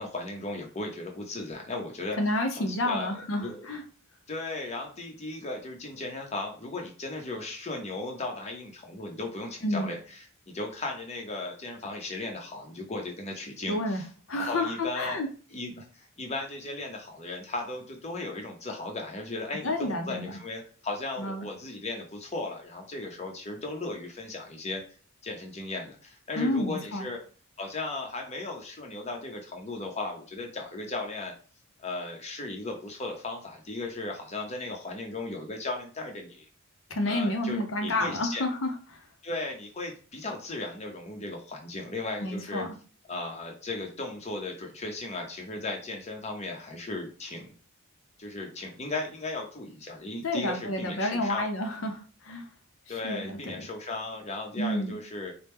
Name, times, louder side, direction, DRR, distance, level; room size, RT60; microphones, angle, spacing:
voice 1, 0.0-2.2 2.6-3.7 4.3-10.3 10.5-15.2 15.5-24.8 25.2-27.2 27.6-31.3 31.8-36.5 37.0-38.4 39.2-42.7 43.1-47.5 48.2-51.5 52.9-55.3, left 2 dB, 30° left, 2 dB, 0.7 m, -36 dB
voice 2, 2.2-3.8 9.6-9.9 13.7-14.0 14.3-15.3 19.6-20.4 21.2-21.5 26.4-27.1 36.9-39.0 42.2-42.7 50.2-52.4 53.0-53.7 54.6-55.0, left 1 dB, 70° left, 4 dB, 0.7 m, -30 dB
4.3 x 2.2 x 3.5 m, 0.39 s
head